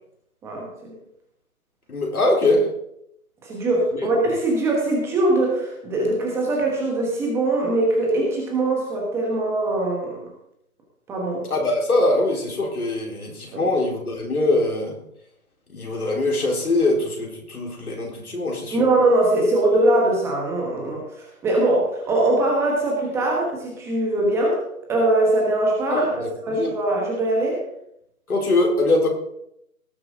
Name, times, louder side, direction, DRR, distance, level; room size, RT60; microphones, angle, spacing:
voice 1, 0.4-1.0 3.4-10.3 11.1-11.5 13.5-13.6 18.7-24.6 24.9-26.1 26.4-27.6, right 2 dB, 5° right, -2 dB, 1.2 m, -22 dB
voice 2, 1.9-2.7 4.0-4.1 11.5-14.9 15.7-18.8 25.9-26.7 28.3-29.1, left 2 dB, 85° left, -1 dB, 4.1 m, -22 dB
18.5 x 7.5 x 3.8 m, 0.76 s
figure-of-eight pair, 155°, 43 cm